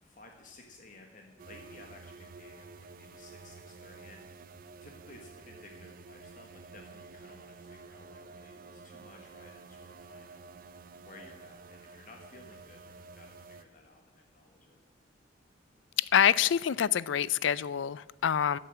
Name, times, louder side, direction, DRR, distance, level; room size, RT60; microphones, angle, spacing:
voice 1, 0.0-4.4 4.8-10.6 11.0-14.8, left 2 dB, 45° left, 2 dB, 1.4 m, -55 dB
sound 1, 1.4-13.6, right 4 dB, 45° right, 0.4 m, -51 dB
voice 2, 16.0-18.6, left 9 dB, 75° left, 20 dB, 0.4 m, -26 dB
14.0 x 7.1 x 8.8 m, 1.1 s
head